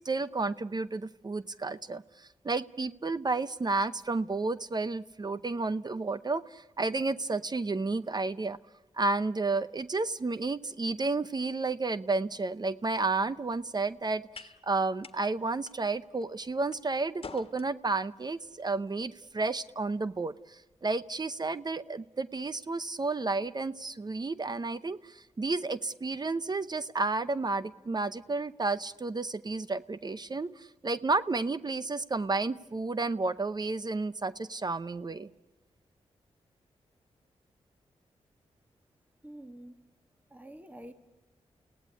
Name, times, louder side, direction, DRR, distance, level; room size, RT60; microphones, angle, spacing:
voice 1, 0.0-8.6 8.9-35.3, right 3 dB, 35° right, 0.7 m, -31 dB
sound 1, 12.8-21.2, left 4 dB, 50° left, 1.6 m, -54 dB
voice 2, 39.2-39.8 40.3-40.9, right 1 dB, 15° right, 1.9 m, -47 dB
29.5 x 17.5 x 9.9 m
cardioid pair, 55°, 12 cm